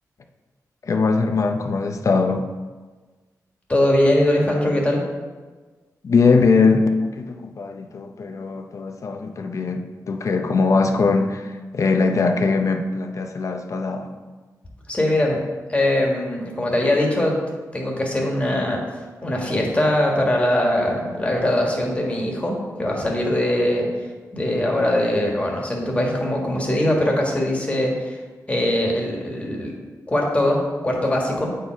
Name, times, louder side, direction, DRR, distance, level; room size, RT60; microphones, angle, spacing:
voice 1, 0.9-2.5 6.0-14.1, left 4 dB, 55° left, 6 dB, 0.6 m, -21 dB
voice 2, 3.7-5.0 14.9-15.4 15.7-17.4 17.7-18.8 19.2-24.1 24.3-28.2 28.5-29.7 30.1-31.6, left 1 dB, 20° left, -1 dB, 1.7 m, -21 dB
8.4 x 4.7 x 4.5 m, 1.4 s
wide cardioid pair, 100°, 6 cm